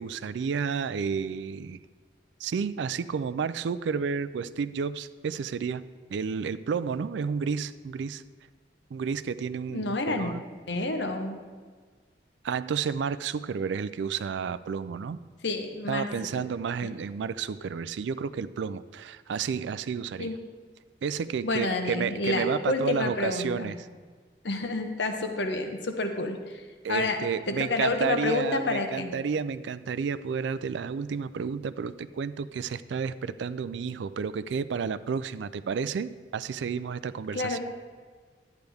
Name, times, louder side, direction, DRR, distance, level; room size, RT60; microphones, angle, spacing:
voice 1, 0.0-1.8 2.4-5.8 6.1-8.2 8.9-10.4 12.4-15.2 15.9-20.3 21.0-23.8 26.8-37.6, right 6 dB, 80° right, 14 dB, 0.3 m, -31 dB
voice 2, 9.7-10.3 10.7-11.4 15.4-16.1 16.8-16.9 20.2-20.4 21.4-23.7 24.4-26.6 26.9-27.2 27.5-29.1 37.3-37.6, left 2 dB, 80° left, 5 dB, 1.0 m, -29 dB
11.5 x 9.2 x 3.5 m, 1.5 s
head